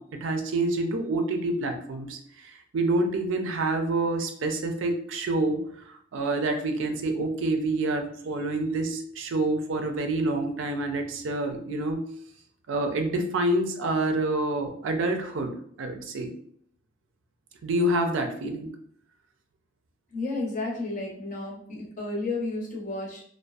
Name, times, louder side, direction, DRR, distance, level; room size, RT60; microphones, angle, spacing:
voice 1, 0.0-5.6 5.9-12.1 12.7-16.3 17.6-18.7, right 2 dB, 70° right, 5 dB, 0.4 m, -27 dB
voice 2, 20.1-23.2, left 2 dB, 40° left, -2 dB, 0.6 m, -32 dB
2.5 x 2.2 x 2.3 m, 0.64 s
head